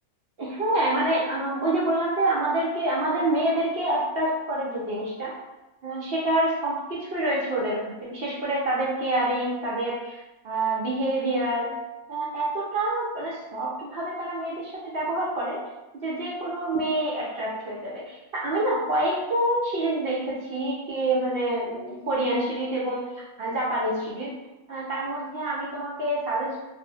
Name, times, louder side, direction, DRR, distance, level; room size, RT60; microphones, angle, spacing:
voice 1, 0.4-5.3 5.8-11.7 12.1-15.6 15.9-24.3 24.7-26.6, right 1 dB, 65° right, -5 dB, 0.6 m, -27 dB
2.5 x 2.0 x 2.7 m, 1.0 s
omnidirectional pair, 1.5 m